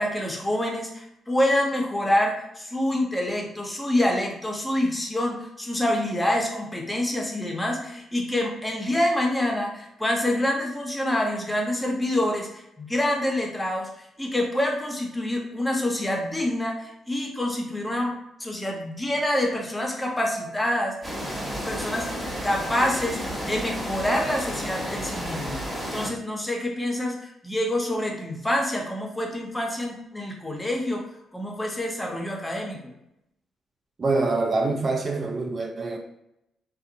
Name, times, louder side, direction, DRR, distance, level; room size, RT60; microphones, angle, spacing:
voice 1, 0.0-18.1 18.4-21.2 21.7-25.6 25.9-31.0 31.3-32.9, left 1 dB, 15° left, 0.7 m, -26 dB
sound 1, 21.0-26.1, equal, 15° right, 0.9 m, -32 dB
voice 2, 34.0-36.0, right 3 dB, 45° right, 0.3 m, -25 dB
2.7 x 2.0 x 2.7 m
hypercardioid pair, 50°, 0 cm